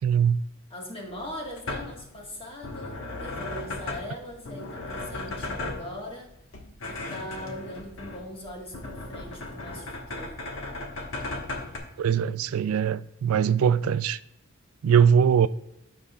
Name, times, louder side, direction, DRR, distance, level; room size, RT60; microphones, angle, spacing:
voice 1, 0.0-0.4 12.0-14.2 14.8-15.5, right 7 dB, 80° right, 0.3 m, -21 dB
voice 2, 0.7-6.3 6.8-10.5, left 1 dB, 25° left, 1.5 m, -40 dB
sound 1, 1.1-11.8, left 2 dB, 65° left, 1.3 m, -37 dB
14.5 x 4.9 x 2.4 m
head